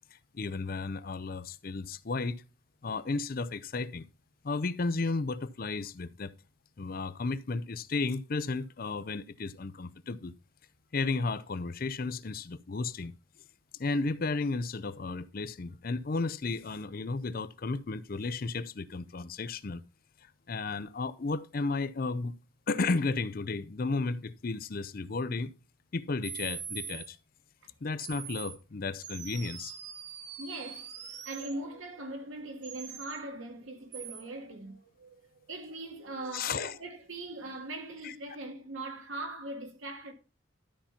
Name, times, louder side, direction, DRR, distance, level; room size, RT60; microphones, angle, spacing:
voice 1, 0.1-2.4 2.8-4.1 4.4-6.3 6.8-10.3 10.9-13.1 13.8-19.8 20.5-22.3 22.7-25.5 25.9-27.2 27.8-29.7 36.3-36.7 38.0-38.1, left 3 dB, 45° left, 0.5 m, -33 dB
sound 1, 26.2-27.1 28.0-28.6 29.0-31.5 32.6-33.2 33.9-34.2, right 7 dB, 55° right, 1.2 m, -42 dB
voice 2, 30.4-40.1, right 2 dB, 85° right, 2.1 m, -41 dB
12.5 x 4.4 x 5.6 m
head